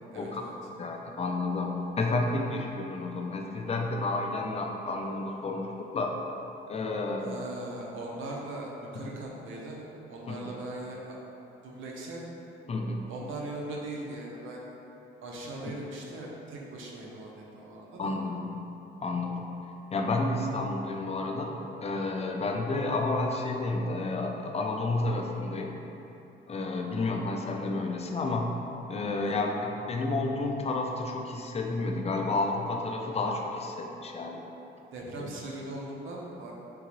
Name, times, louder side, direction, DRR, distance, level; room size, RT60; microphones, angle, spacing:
voice 1, 0.1-0.5 7.2-11.2 11.6-12.2 13.1-14.7 15.2-18.1 29.2-29.3 34.9-36.5, right 2 dB, 80° right, -2 dB, 0.7 m, -40 dB
voice 2, 0.8-6.2 6.7-7.4 10.3-10.5 12.7-13.0 18.0-18.6 19.0-19.5 19.9-21.5 21.8-25.8 26.5-28.6 28.9-34.4 35.2-35.3, left 2 dB, 30° left, 1 dB, 0.4 m, -31 dB
3.7 x 3.7 x 3.0 m, 3.0 s
cardioid pair, 90°, 20 cm